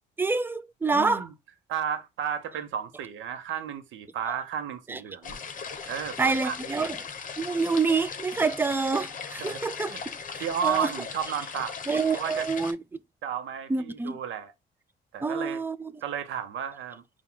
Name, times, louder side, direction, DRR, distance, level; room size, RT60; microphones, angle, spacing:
voice 1, 0.2-1.3 4.3-4.4 4.9-5.0 6.2-7.0 7.4-10.0 10.3-10.9 11.9-12.8 13.7-14.2 15.2-15.9, right 4 dB, 10° right, 0.3 m, -27 dB
voice 2, 0.9-1.3 1.7-5.4 5.9-6.9 9.4-9.6 9.9-10.0 10.4-11.7 12.1-12.5 13.2-14.5 15.1-15.6 16.0-17.0, right 8 dB, 75° right, 0.7 m, -33 dB
sound 1, 5.2-12.7, left 6 dB, 40° left, 0.8 m, -38 dB
4.6 x 2.3 x 3.6 m
cardioid pair, 90°, 20 cm